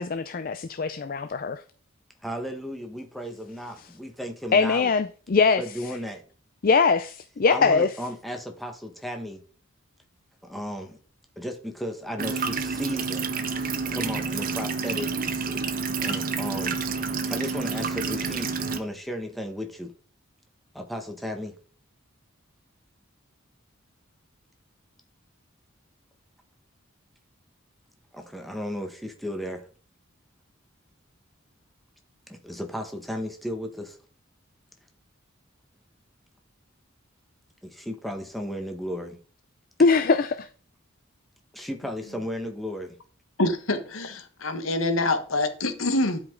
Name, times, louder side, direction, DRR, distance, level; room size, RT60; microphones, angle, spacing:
voice 1, 0.0-1.6 3.8-3.9 4.5-5.6 6.6-7.9 39.8-40.5, left 4 dB, 45° left, 0.4 m, -22 dB
voice 2, 2.2-4.9 5.6-6.2 7.5-9.4 10.4-11.0 11.4-13.3 13.9-15.1 16.0-16.8 17.3-19.9 20.7-21.5 28.1-29.7 32.3-34.0 37.6-39.2 41.5-43.0, equal, ahead, 1.2 m, -34 dB
sound 1, 12.2-18.8, right 4 dB, 45° right, 0.9 m, -29 dB
voice 3, 43.4-46.2, left 2 dB, 80° left, 1.3 m, -26 dB
11.5 x 5.2 x 3.8 m
head